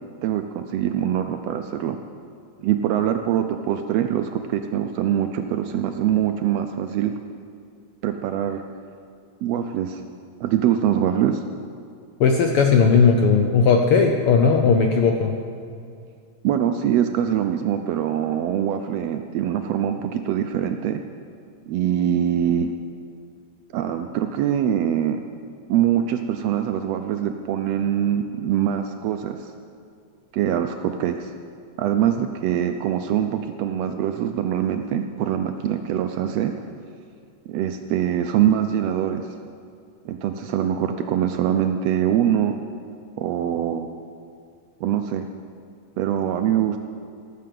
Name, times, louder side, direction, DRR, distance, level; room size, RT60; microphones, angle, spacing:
voice 1, 0.2-2.0 2.6-7.1 8.0-8.6 9.4-10.0 10.4-11.4 16.4-21.0 21.7-22.7 23.7-25.2 25.7-29.5 30.3-31.3 31.8-36.5 37.5-39.3 40.0-42.6 43.2-43.9 44.8-45.2 46.0-46.8, right 10 dB, 80° right, 7 dB, 1.5 m, -23 dB
voice 2, 12.2-15.3, left 5 dB, 75° left, 3 dB, 1.3 m, -17 dB
17.0 x 6.7 x 7.6 m, 2.3 s
omnidirectional pair, 3.3 m